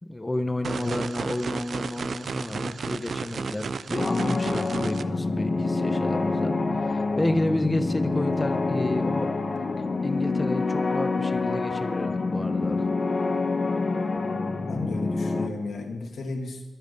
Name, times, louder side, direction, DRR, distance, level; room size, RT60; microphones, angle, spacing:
voice 1, 0.0-9.3 10.0-12.9, left 1 dB, 15° left, 8 dB, 0.9 m, -30 dB
sound 1, 0.6-5.0, right 5 dB, 50° right, 0.5 m, -33 dB
sound 2, 4.0-15.5, left 3 dB, 35° left, 1.1 m, -27 dB
voice 2, 14.7-16.6, left 3 dB, 65° left, 3 dB, 2.2 m, -34 dB
22.5 x 7.9 x 5.4 m, 1.2 s
wide cardioid pair, 175°, 0 cm